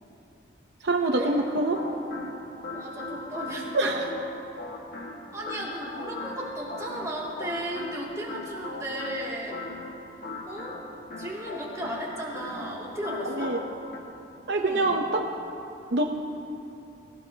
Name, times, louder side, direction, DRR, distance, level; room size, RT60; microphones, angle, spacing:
voice 1, 0.8-1.8 3.7-4.0 13.3-13.6 14.5-15.2 15.9-16.0, right 2 dB, 65° right, 2 dB, 0.8 m, -25 dB
sound 1, 1.6-14.0, left 2 dB, 55° left, 1.8 m, -39 dB
voice 2, 2.7-3.9 5.3-9.6 10.5-10.8 11.2-13.6 14.5-15.0, equal, 15° right, -5 dB, 2.6 m, -35 dB
25.0 x 16.0 x 2.9 m, 2.9 s
head